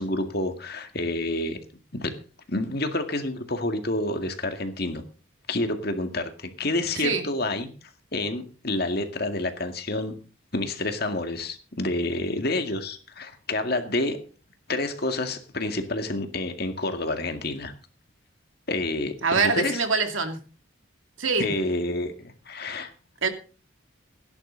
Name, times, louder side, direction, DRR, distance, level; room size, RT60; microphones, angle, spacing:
voice 1, 0.0-1.6 1.9-2.2 2.5-5.0 5.5-7.7 8.1-10.2 10.5-14.2 14.7-17.7 18.7-19.8 21.4-22.9, left 2 dB, 50° left, 6 dB, 2.1 m, -28 dB
voice 2, 19.2-20.4 21.2-21.5 23.2-23.3, right 4 dB, 80° right, 6 dB, 2.4 m, -24 dB
17.0 x 11.0 x 3.9 m, 0.37 s
head